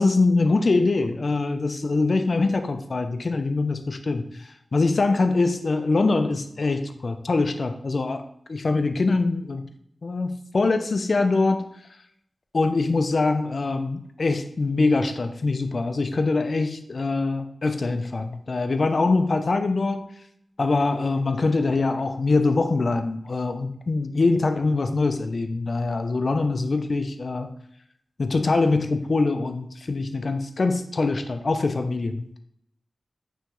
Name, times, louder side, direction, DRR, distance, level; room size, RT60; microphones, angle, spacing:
voice 1, 0.0-8.2 8.5-9.6 10.0-11.7 12.5-20.0 20.6-27.5 28.2-32.3, left 3 dB, 60° left, 8 dB, 0.4 m, -23 dB
5.5 x 2.9 x 3.0 m, 0.70 s
wide cardioid pair, 85°, 0 cm